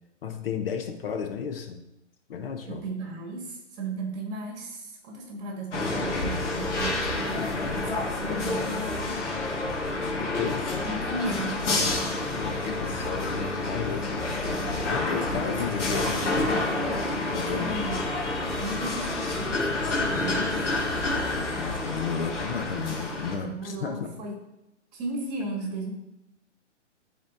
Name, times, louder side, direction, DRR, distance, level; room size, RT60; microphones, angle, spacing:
voice 1, 0.2-1.8 2.3-2.8 7.3-8.6 10.2-10.8 12.3-14.3 14.9-16.6 17.3-17.8 21.6-24.1, left 6 dB, 50° left, 6 dB, 0.8 m, -33 dB
voice 2, 2.6-7.9 8.2-8.9 10.8-11.6 15.3-15.7 16.0-17.1 17.5-18.0 18.5-20.7 23.4-24.4 24.9-25.9, right 2 dB, 35° right, 1 dB, 1.8 m, -36 dB
sound 1, 5.7-23.4, left 2 dB, 75° left, 1.9 m, -29 dB
12.0 x 4.2 x 2.7 m, 0.88 s
hypercardioid pair, 140°, 36 cm